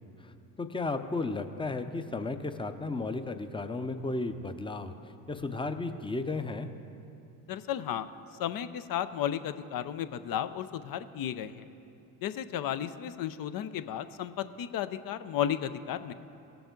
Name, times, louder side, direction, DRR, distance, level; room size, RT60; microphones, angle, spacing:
voice 1, 0.2-6.7, left 3 dB, 10° left, 9 dB, 0.7 m, -34 dB
voice 2, 7.5-8.1 8.4-11.7 12.2-16.1, left 10 dB, 50° left, 12 dB, 0.6 m, -34 dB
17.5 x 6.9 x 3.8 m, 2.6 s
hypercardioid pair, 60°, 43 cm